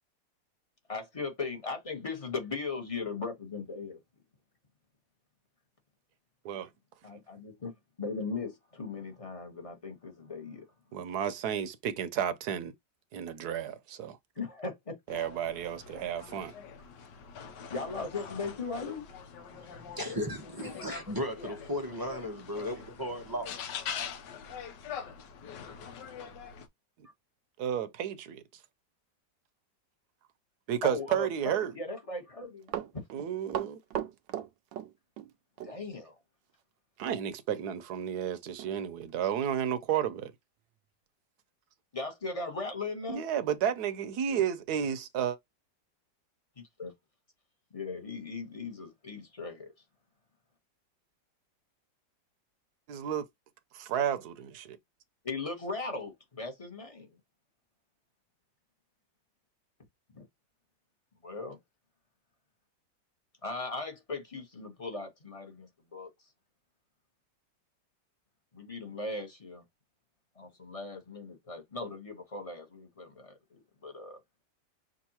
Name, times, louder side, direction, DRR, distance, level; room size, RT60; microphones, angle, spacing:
voice 1, 0.9-4.0 7.0-10.7 14.4-15.0 15.9-16.0 17.7-19.1 30.8-33.0 35.6-36.2 41.9-43.2 46.6-46.9 47.7-49.7 55.2-57.1 60.1-60.3 61.2-61.6 63.4-66.3 68.5-69.6 70.3-74.2, left 3 dB, 25° left, 0.9 m, -38 dB
voice 2, 10.9-12.7 13.1-14.2 15.1-16.5 27.6-28.4 30.7-31.7 33.1-33.8 37.0-40.3 43.1-45.4 52.9-53.2 53.7-54.8, right 9 dB, 70° right, 1.2 m, -32 dB
sound 1, 15.1-26.7, left 7 dB, 80° left, 1.4 m, -44 dB
voice 3, 19.5-24.0, equal, 30° right, 0.4 m, -36 dB
Run, 32.4-35.3 35.6-35.7 37.0-37.2 37.6-37.7 38.2-38.3 38.6-38.8 39.3-39.4, right 11 dB, 85° right, 1.3 m, -37 dB
6.2 x 2.6 x 2.9 m
omnidirectional pair, 1.9 m